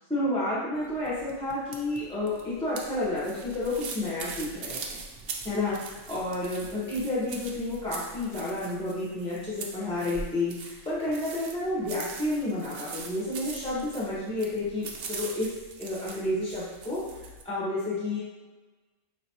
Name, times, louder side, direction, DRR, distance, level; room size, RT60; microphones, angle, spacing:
voice 1, 0.1-5.0 5.4-15.5 15.8-18.2, left 2 dB, 5° left, -9 dB, 0.9 m, -30 dB
sound 1, 0.8-17.4, right 4 dB, 60° right, 0.7 m, -42 dB
5.0 x 2.9 x 2.8 m, 1.2 s
omnidirectional pair, 1.3 m